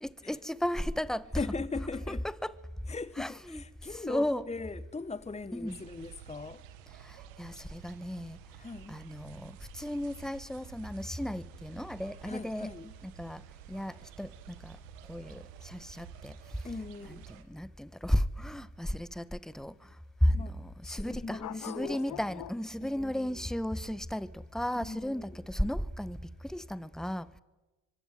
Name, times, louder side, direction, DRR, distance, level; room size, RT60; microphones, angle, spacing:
voice 1, 0.0-1.3 2.1-2.5 3.2-3.6 3.9-4.5 5.5-5.8 7.0-8.4 8.9-12.7 13.0-13.4 13.7-14.8 15.1-16.4 17.1-19.9 20.2-26.2 26.4-27.3, equal, ahead, 1.4 m, -34 dB
voice 2, 1.3-2.3 2.9-6.6 8.6-9.0 12.2-12.9 16.6-17.3 20.3-20.5 20.8-22.4 22.8-23.4 24.7-25.3, left 3 dB, 15° left, 1.1 m, -40 dB
sound 1, 5.7-17.4, right 9 dB, 85° right, 1.7 m, -51 dB
sound 2, 11.9-26.4, left 13 dB, 55° left, 0.8 m, -49 dB
25.0 x 22.0 x 9.3 m
hypercardioid pair, 45°, 38 cm